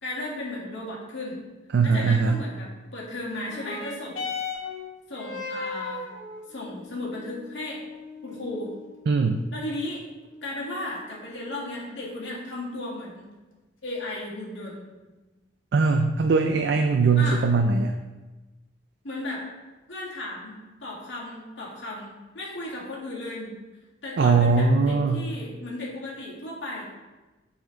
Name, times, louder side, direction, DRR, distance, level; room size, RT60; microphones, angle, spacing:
voice 1, 0.0-1.4 1.8-4.3 5.1-6.1 6.5-7.8 8.2-8.7 9.5-10.0 10.4-13.3 13.8-14.8 17.2-17.5 19.0-19.5 19.9-23.5 24.0-26.8, left 1 dB, 65° left, -5 dB, 1.9 m, -35 dB
voice 2, 1.7-2.4 9.1-9.4 15.7-17.9 24.2-25.2, right 4 dB, 60° right, 6 dB, 0.4 m, -21 dB
sound 1, 3.3-12.3 13.2-13.3, left 4 dB, 85° left, 1.4 m, -38 dB
7.4 x 4.3 x 3.9 m, 1.2 s
head